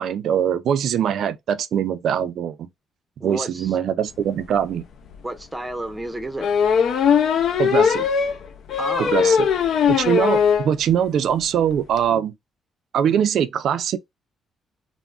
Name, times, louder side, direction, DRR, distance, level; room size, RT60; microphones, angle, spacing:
voice 1, 0.0-2.7 3.2-4.8 7.6-8.1 9.0-9.5 9.9-12.3 12.9-14.0, right 9 dB, 70° right, 0.4 m, -22 dB
voice 2, 3.2-3.8 5.2-6.5 8.8-9.4, right 2 dB, 15° right, 0.6 m, -31 dB
sound 1, 4.6-4.7 5.1-5.2 6.4-10.7 11.1-11.2 11.4-11.5 11.7-12.0, left 7 dB, 65° left, 0.4 m, -19 dB
3.5 x 2.0 x 2.3 m
cardioid pair, 90°, 0 cm